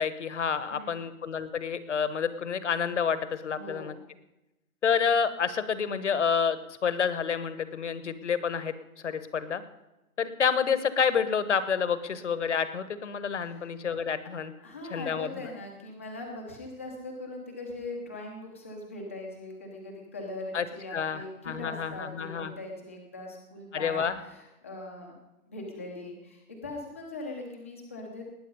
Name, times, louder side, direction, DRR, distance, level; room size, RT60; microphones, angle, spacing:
voice 1, 0.0-3.9 4.8-8.7 9.0-9.6 10.2-14.5 14.9-15.3 20.5-20.6 20.9-22.5 23.7-24.1, left 6 dB, 50° left, 13 dB, 1.2 m, -29 dB
voice 2, 0.7-1.1 3.5-4.0 13.4-13.7 14.2-25.1 25.5-28.3, left 2 dB, 10° left, -1 dB, 0.8 m, -41 dB
20.0 x 9.1 x 5.4 m, 0.97 s
hypercardioid pair, 180°, 44 cm